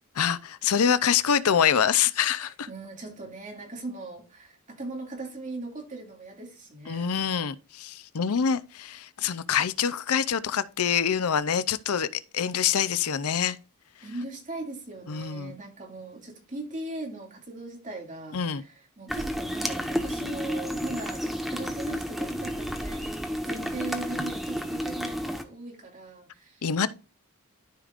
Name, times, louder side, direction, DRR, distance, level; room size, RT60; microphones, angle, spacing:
voice 1, 0.2-2.7 6.9-13.6 15.1-15.6 18.3-18.6 26.6-26.9, left 8 dB, 80° left, 0.6 m, -25 dB
voice 2, 2.7-7.1 14.0-26.9, right 2 dB, 35° right, 2.3 m, -39 dB
sound 1, 19.1-25.4, equal, ahead, 0.8 m, -31 dB
13.0 x 5.1 x 2.5 m
head